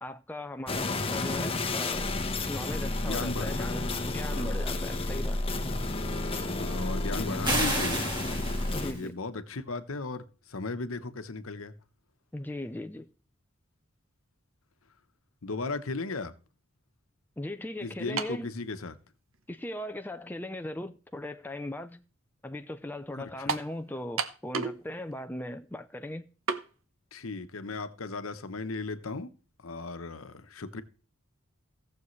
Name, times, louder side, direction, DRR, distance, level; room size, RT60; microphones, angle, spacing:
voice 1, 0.0-2.1 2.5-5.4 8.7-9.1 12.3-13.1 17.4-18.5 19.5-22.0 22.4-26.2, left 1 dB, 10° left, 0.5 m, -38 dB
sound 1, 0.7-8.9, left 2 dB, 25° left, 1.1 m, -31 dB
voice 2, 3.0-3.9 4.3-4.7 6.6-8.1 8.8-11.7 15.4-16.3 17.8-19.0 23.2-23.5 27.1-29.3 29.6-30.8, left 3 dB, 90° left, 1.0 m, -36 dB
sound 2, 7.4-9.0, right 1 dB, 20° right, 2.3 m, -31 dB
sound 3, 18.2-18.5 19.3-19.4 23.5-23.7 24.2-24.8 25.1-25.2 26.5-26.7, right 5 dB, 80° right, 1.0 m, -31 dB
17.0 x 7.0 x 3.2 m
head